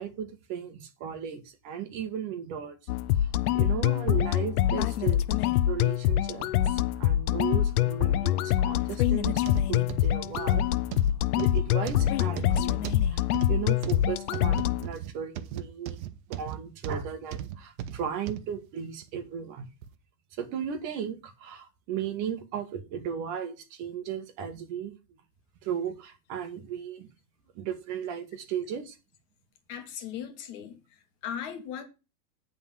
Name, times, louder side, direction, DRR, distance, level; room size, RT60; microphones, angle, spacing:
voice 1, 0.0-2.8 3.2-3.3 3.5-5.3 5.7-9.4 9.7-10.6 11.3-16.0 16.3-19.7 20.4-25.0 25.6-27.1 27.5-29.0, right 8 dB, 40° right, 1.5 m, -35 dB
sound 1, 2.9-14.9, left 12 dB, 70° left, 0.7 m, -25 dB
sound 2, 9.4-18.5 19.0-19.2 19.8-19.9, right 10 dB, 60° right, 1.1 m, -37 dB
voice 2, 29.7-31.8, left 9 dB, 40° left, 1.6 m, -38 dB
9.8 x 3.9 x 7.3 m
supercardioid pair, 150°, 46 cm